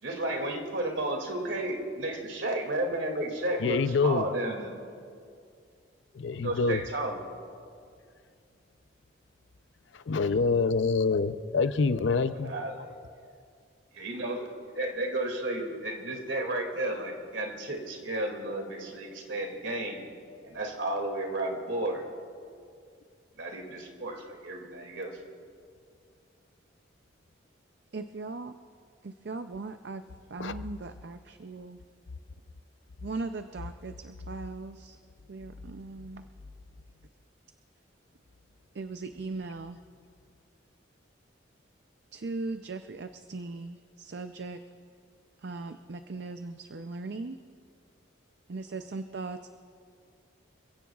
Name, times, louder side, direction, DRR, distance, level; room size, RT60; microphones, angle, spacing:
voice 1, 0.0-4.7 6.3-7.2 12.4-12.9 13.9-20.0 20.4-22.0 23.4-25.2, right 1 dB, 75° right, 2 dB, 2.4 m, -33 dB
voice 2, 3.6-4.2 6.2-6.8 10.1-12.5 30.4-30.5, left 4 dB, 75° left, 12 dB, 0.5 m, -26 dB
voice 3, 27.9-28.5 29.0-30.0 30.3-31.8 33.0-35.0 35.3-36.3 38.7-39.8 42.1-44.6 45.4-47.4 48.5-49.5, right 3 dB, 60° right, 8 dB, 0.5 m, -38 dB
28.0 x 16.5 x 2.4 m, 2.3 s
head